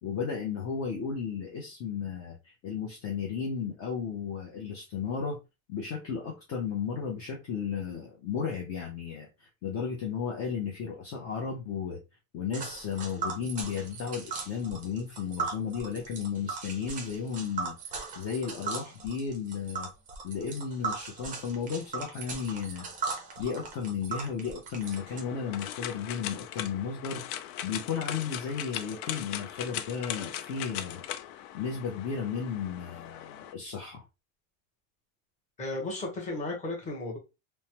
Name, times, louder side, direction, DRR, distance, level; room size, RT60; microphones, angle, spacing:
voice 1, 0.0-5.4 5.7-12.0 12.3-19.9 20.2-22.9 23.4-27.2 27.6-31.0 31.5-34.0, left 6 dB, 35° left, 0.6 m, -34 dB
Tick, 12.5-25.2, right 4 dB, 20° right, 0.4 m, -38 dB
sound 1, 24.8-33.5, left 11 dB, 90° left, 0.5 m, -39 dB
voice 2, 35.6-37.2, left 2 dB, 15° left, 0.9 m, -34 dB
3.1 x 2.1 x 2.8 m
cardioid pair, 165°, 42 cm